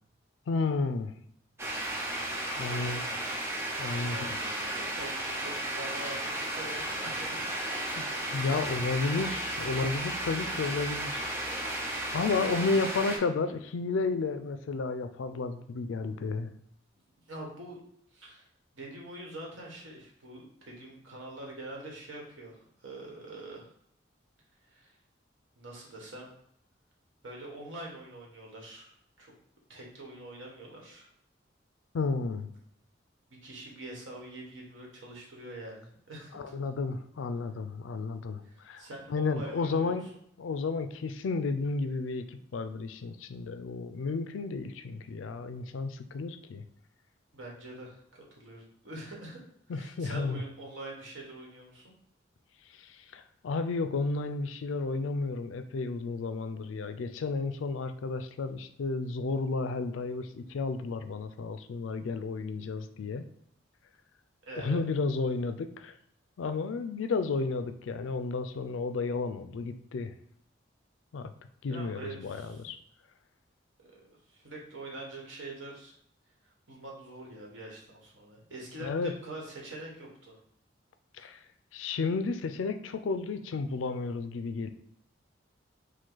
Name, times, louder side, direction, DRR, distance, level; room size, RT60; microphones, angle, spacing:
voice 1, 0.5-1.1 2.6-3.0 3.8-4.3 8.0-8.1 8.3-11.3 12.1-16.5 31.9-32.5 36.3-38.8 39.1-40.1 40.4-46.6 49.7-50.4 53.1-63.3 64.6-65.9 66.4-70.1 71.1-71.3 71.6-72.8 78.8-79.1 81.2-81.4 81.7-84.7, left 4 dB, 85° left, 10 dB, 0.4 m, -32 dB
sound 1, 1.6-13.2, right 1 dB, 15° right, 0.6 m, -34 dB
voice 2, 2.7-3.0 3.9-7.4 8.2-8.6 12.5-12.9 17.2-17.8 18.1-18.5 18.7-23.7 24.7-25.0 25.5-26.3 27.2-29.3 29.7-31.1 33.3-36.7 38.4-40.1 47.3-49.4 49.7-51.9 64.4-64.9 71.6-72.6 73.8-75.9 76.7-80.4, right 1 dB, 90° right, -1 dB, 1.3 m, -45 dB
4.9 x 2.2 x 3.8 m, 0.70 s
head